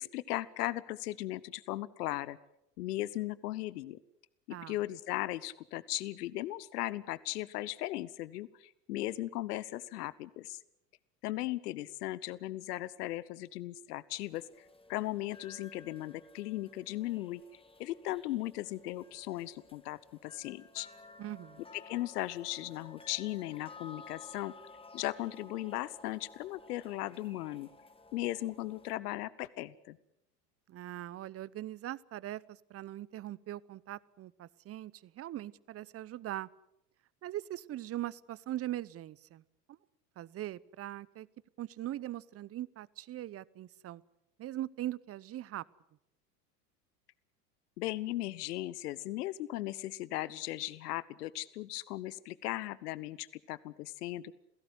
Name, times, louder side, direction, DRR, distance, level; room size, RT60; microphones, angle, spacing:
voice 1, 0.0-2.4 2.8-4.0 4.5-10.6 11.2-14.4 14.9-17.4 17.8-20.9 21.7-24.5 24.9-27.7 28.1-30.0 47.8-54.4, left 16 dB, 70° left, 19 dB, 1.0 m, -37 dB
sound 1, 14.1-29.0, left 3 dB, 10° left, 2.1 m, -55 dB
voice 2, 21.2-21.6 30.7-36.5 37.2-39.4 39.7-39.8 40.2-41.3 41.6-44.0 44.4-45.6, right 13 dB, 30° right, 22 dB, 0.8 m, -41 dB
28.0 x 17.0 x 8.2 m, 0.83 s
hypercardioid pair, 85°, 48 cm